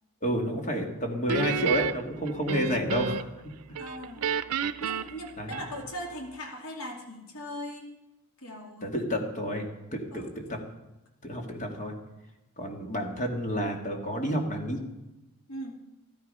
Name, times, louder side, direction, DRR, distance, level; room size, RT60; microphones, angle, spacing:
voice 1, 0.2-3.3 5.4-5.6 8.8-10.6 11.2-11.9 12.6-14.8, equal, 35° left, 2 dB, 2.1 m, -30 dB
Guitar, 1.3-3.4 3.7-6.1, right 7 dB, 90° right, 0.5 m, -31 dB
voice 2, 3.8-4.3 4.8-7.9 8.4-8.9 10.1-10.3 15.5-15.8, equal, 80° left, 2 dB, 2.4 m, -39 dB
14.0 x 13.5 x 5.5 m, 0.99 s
head